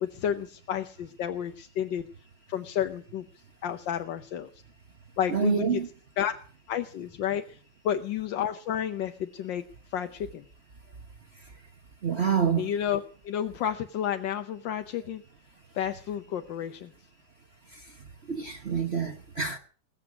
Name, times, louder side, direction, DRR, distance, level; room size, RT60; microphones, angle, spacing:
voice 1, 0.0-2.1 2.5-3.2 3.6-4.5 5.2-5.8 6.2-6.3 6.7-7.6 7.8-9.6 9.9-10.4 12.6-15.2 15.7-16.9, left 9 dB, 85° left, 1.6 m, -31 dB
voice 2, 5.3-5.9 12.0-12.7 17.7-17.9 18.3-19.6, right 6 dB, 40° right, 1.2 m, -27 dB
21.0 x 8.0 x 7.3 m
omnidirectional pair, 1.9 m